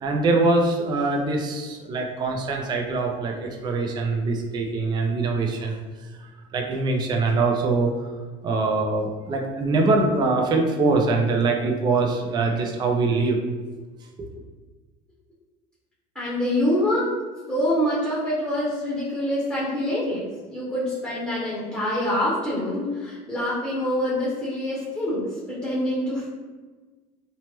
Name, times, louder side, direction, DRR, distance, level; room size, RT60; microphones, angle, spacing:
voice 1, 0.0-5.8 6.2-8.1 8.4-13.4 14.2-14.3, right 3 dB, 25° right, 2 dB, 0.3 m, -23 dB
voice 2, 16.1-17.1 17.5-26.3, left 1 dB, 5° left, -9 dB, 0.8 m, -25 dB
3.2 x 2.0 x 2.9 m, 1.3 s
cardioid pair, 135°, 18 cm